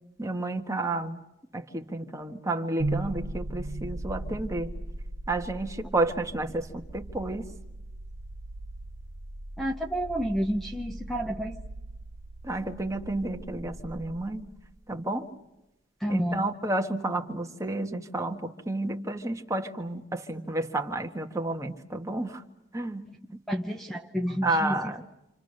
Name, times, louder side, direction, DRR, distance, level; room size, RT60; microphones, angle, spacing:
voice 1, 0.2-1.2 1.5-4.7 5.3-7.4 12.4-14.5 14.9-15.3 16.1-22.4 22.7-23.1 24.4-25.0, right 2 dB, 15° right, 4 dB, 1.5 m, -31 dB
sound 1, 2.8-14.9, right 2 dB, 75° right, 1.0 m, -38 dB
voice 2, 9.6-11.6 16.0-16.5 23.5-24.9, equal, ahead, 3 dB, 0.9 m, -30 dB
28.0 x 28.0 x 6.6 m, 0.94 s
head